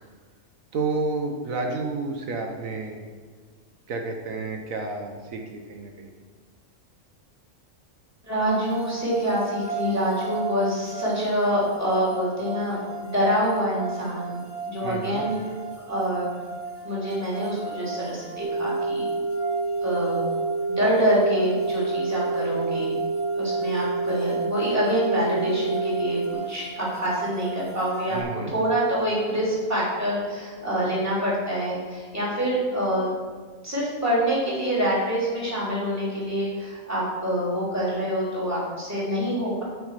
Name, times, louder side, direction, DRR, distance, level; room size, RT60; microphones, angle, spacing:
voice 1, 0.7-3.0 3.9-6.1 14.8-15.2 28.1-28.5, right 3 dB, 80° right, 2 dB, 1.4 m, -30 dB
voice 2, 8.2-15.4 15.8-16.4 16.8-19.1 19.8-20.3 20.7-23.0 23.3-26.2 26.5-28.2 28.5-33.1 33.6-39.6, equal, 10° right, -7 dB, 3.3 m, -26 dB
sound 1, 8.4-28.2, right 4 dB, 15° left, 1.9 m, -36 dB
sound 2, 18.4-26.3, right 3 dB, 60° right, 1.4 m, -28 dB
8.8 x 6.3 x 6.7 m, 1.5 s
omnidirectional pair, 1.4 m